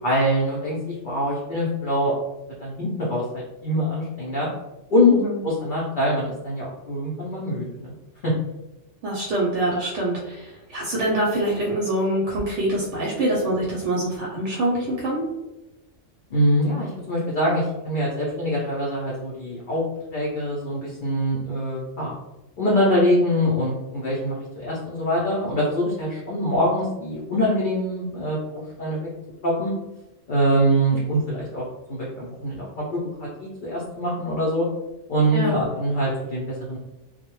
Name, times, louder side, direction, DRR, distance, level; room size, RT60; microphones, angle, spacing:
voice 1, 0.0-2.2 2.6-4.5 4.9-5.2 5.4-7.9 8.2-8.3 16.3-19.8 20.1-22.1 22.6-29.0 29.4-29.7 30.3-31.6 31.9-32.9 33.2-34.7 35.1-36.8, equal, 55° left, -6 dB, 0.6 m, -24 dB
voice 2, 5.1-5.4 9.0-15.2 35.3-35.6, right 1 dB, 70° right, -4 dB, 0.8 m, -25 dB
2.2 x 2.0 x 2.9 m, 1.0 s
omnidirectional pair, 1.3 m